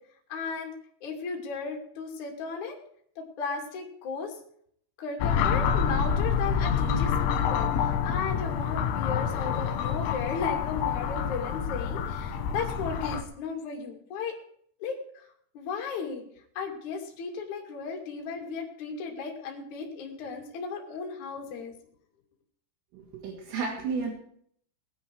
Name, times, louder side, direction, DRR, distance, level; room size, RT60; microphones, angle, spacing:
voice 1, 0.3-0.7 1.0-2.8 3.2-4.4 5.0-14.3 14.8-15.2 15.5-16.2 16.6-21.7, left 5 dB, 40° left, 0 dB, 3.5 m, -35 dB
sound 1, 5.2-13.2, left 7 dB, 75° left, 3.3 m, -27 dB
voice 2, 22.9-24.1, right 4 dB, 75° right, -3 dB, 5.1 m, -32 dB
20.0 x 10.0 x 4.8 m, 0.63 s
omnidirectional pair, 6.0 m